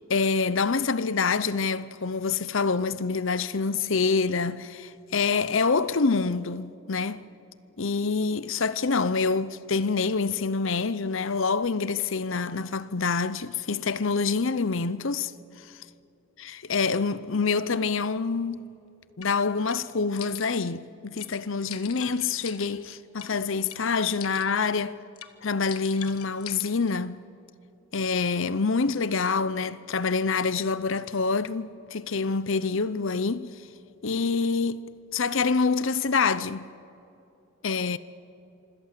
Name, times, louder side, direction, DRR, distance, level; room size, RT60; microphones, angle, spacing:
voice 1, 0.1-7.2 7.8-15.3 16.4-18.6 19.2-25.0 25.4-27.2 27.9-33.5 34.0-36.7 37.6-38.0, left 4 dB, 60° left, 0.7 m, -26 dB
sound 1, 19.2-19.3 19.7-19.8 20.2-20.7 21.2-21.3 21.7-23.3 23.7-23.8 24.2-24.7 25.2-25.3 25.7-27.0, left 10 dB, 90° left, 1.4 m, -42 dB
26.5 x 25.5 x 7.5 m
head